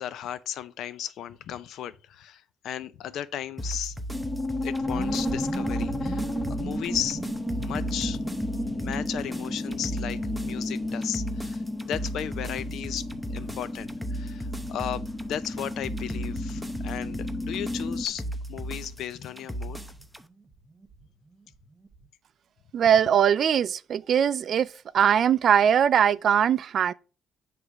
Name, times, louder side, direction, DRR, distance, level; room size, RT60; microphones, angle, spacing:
voice 1, 0.0-4.0 4.6-8.2 8.7-18.2 18.5-19.8, left 10 dB, 75° left, 0.6 m, -35 dB
sound 1, 3.6-20.2, right 1 dB, ahead, 0.7 m, -37 dB
sound 2, 4.1-18.1, left 2 dB, 25° left, 0.9 m, -33 dB
sound 3, 4.7-21.0 21.3-21.4 21.6-22.0, right 3 dB, 25° right, 1.1 m, -39 dB
voice 2, 22.7-24.7 24.9-26.9, right 8 dB, 50° right, 0.4 m, -21 dB
9.6 x 3.4 x 6.1 m
cardioid pair, 145°, 0 cm